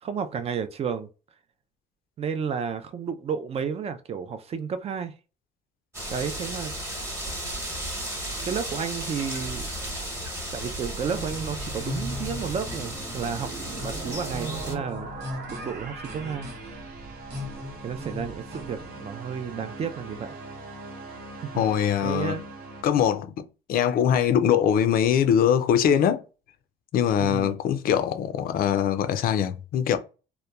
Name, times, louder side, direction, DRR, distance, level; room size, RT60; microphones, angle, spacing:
voice 1, 0.0-1.1 2.2-5.1 6.1-6.7 8.4-9.7 10.5-15.1 15.5-16.5 17.8-20.4 21.4-21.5 22.0-22.4 27.2-27.6, right 6 dB, 40° right, 0.4 m, -32 dB
sound 1, 5.9-14.8, right 1 dB, 15° right, 1.0 m, -34 dB
sound 2, 10.7-22.8, right 2 dB, 60° right, 0.8 m, -41 dB
sound 3, 11.1-18.9, equal, 85° right, 1.1 m, -39 dB
voice 2, 21.5-22.3 22.8-26.2 26.9-30.0, left 9 dB, 60° left, 0.4 m, -22 dB
2.8 x 2.1 x 2.2 m
cardioid pair, 110°, 17 cm